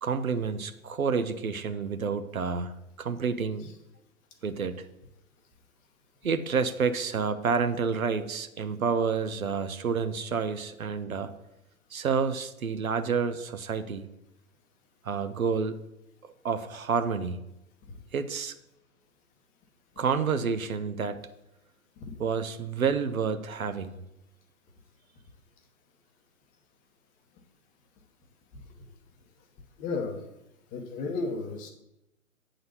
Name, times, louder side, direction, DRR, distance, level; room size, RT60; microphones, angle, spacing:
voice 1, 0.0-2.7 3.0-3.7 4.4-4.7 6.2-11.3 11.9-14.1 15.0-15.8 16.2-17.4 18.1-18.6 20.0-21.2 22.2-24.0, right 5 dB, 75° right, 10 dB, 0.9 m, -29 dB
voice 2, 29.8-30.3 30.7-31.7, left 3 dB, 20° left, 4 dB, 0.8 m, -33 dB
8.0 x 3.9 x 6.8 m, 0.89 s
figure-of-eight pair, 120°, 43 cm